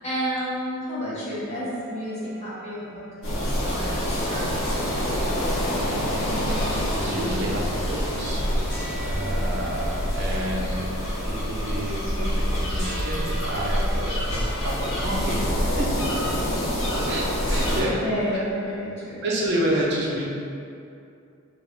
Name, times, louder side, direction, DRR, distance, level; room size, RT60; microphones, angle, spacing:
voice 1, 0.0-4.8 18.0-19.3, equal, 30° left, -8 dB, 0.8 m, -31 dB
sound 1, 1.4-4.4 4.6-18.8, equal, 5° left, 1.1 m, -43 dB
sound 2, 3.2-17.8, equal, 70° left, 0.8 m, -26 dB
voice 2, 5.7-8.7 9.0-10.9 11.3-15.9 16.8-18.0 18.3-18.4 19.2-20.2, right 1 dB, 50° right, -4 dB, 0.5 m, -30 dB
3.4 x 2.4 x 3.5 m, 2.5 s
head